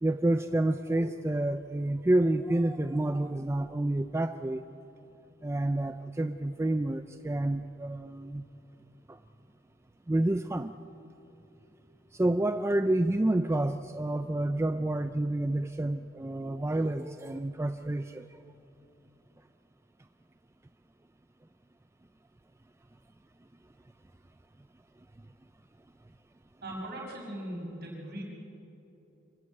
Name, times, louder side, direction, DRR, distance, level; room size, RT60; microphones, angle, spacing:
voice 1, 0.0-4.6 5.4-8.5 9.1-9.2 10.1-10.7 12.1-18.5, right 1 dB, 15° right, 9 dB, 0.4 m, -29 dB
voice 2, 26.6-28.2, right 1 dB, 50° right, -2 dB, 6.3 m, -39 dB
25.5 x 14.5 x 8.6 m, 2.9 s
head